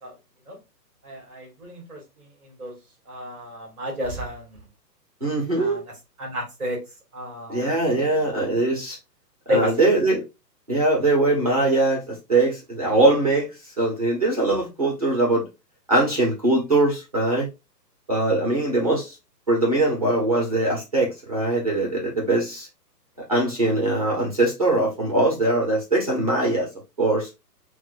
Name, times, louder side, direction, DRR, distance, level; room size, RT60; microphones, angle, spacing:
voice 1, 1.0-2.7 3.1-4.6 5.6-5.8 6.2-6.8 7.1-8.2 9.5-9.7, equal, ahead, 1.3 m, -31 dB
voice 2, 5.2-5.8 7.5-9.0 9.5-10.2 10.7-15.4 15.9-17.5 18.1-19.2 19.5-22.7 23.3-26.7 27.0-27.3, right 2 dB, 25° right, 0.6 m, -21 dB
6.0 x 2.1 x 2.4 m
hypercardioid pair, 170°, 50 cm